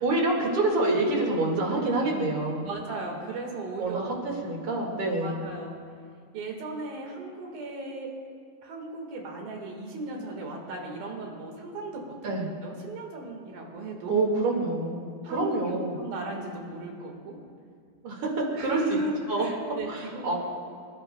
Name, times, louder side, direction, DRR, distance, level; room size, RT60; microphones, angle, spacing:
voice 1, 0.0-2.6 3.8-5.4 12.2-12.5 14.1-15.1 15.3-15.9 18.0-18.8 19.3-19.4 19.9-20.4, right 2 dB, 45° right, -1 dB, 2.5 m, -27 dB
voice 2, 2.6-4.2 5.2-5.7 6.3-8.1 8.6-12.3 12.6-14.1 15.2-17.4 18.5-20.4, right 2 dB, 75° right, 0 dB, 3.6 m, -36 dB
26.0 x 11.5 x 2.3 m, 2.1 s
omnidirectional pair, 4.2 m